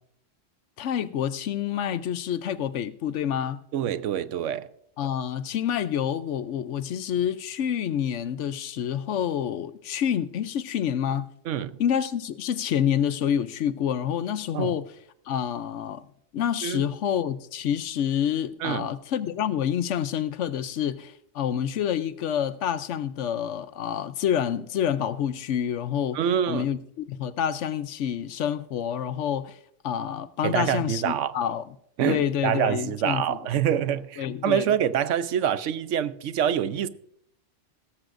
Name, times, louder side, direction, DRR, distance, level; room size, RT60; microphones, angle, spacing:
voice 1, 0.8-3.6 5.0-11.3 11.8-14.9 15.3-16.1 16.3-26.2 26.5-29.6 29.8-31.6 32.1-33.4 34.2-34.7, left 9 dB, 75° left, 1.0 m, -28 dB
voice 2, 3.7-4.7 11.5-11.8 14.5-14.8 16.6-16.8 18.6-18.9 26.1-26.7 30.4-31.4 32.0-36.9, right 9 dB, 80° right, 1.0 m, -26 dB
16.5 x 14.0 x 2.6 m
omnidirectional pair, 1.3 m